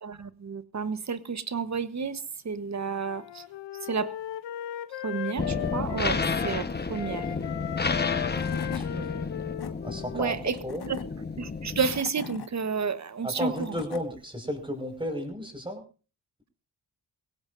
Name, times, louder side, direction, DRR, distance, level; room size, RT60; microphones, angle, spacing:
voice 1, 0.0-3.4 3.8-4.1 5.0-7.2 10.1-10.6 10.9-11.0 11.4-13.8, right 5 dB, 40° right, 13 dB, 1.3 m, -31 dB
Wind instrument woodwind instrument, 3.1-6.6 6.9-10.7, left 12 dB, 80° left, 0.8 m, -37 dB
sound 1, 5.4-12.0, left 4 dB, 25° left, 1.2 m, -31 dB
Tools / Wood, 8.0-8.1 8.3-8.9 9.4-9.7 10.5-11.0 11.7-12.5 13.2-14.0, left 7 dB, 60° left, 1.8 m, -41 dB
voice 2, 8.7-9.1 9.8-10.4 10.6-10.8 13.2-15.8, equal, 10° right, 5 dB, 5.5 m, -33 dB
21.0 x 17.0 x 2.7 m, 0.35 s
cardioid pair, 75°, 43 cm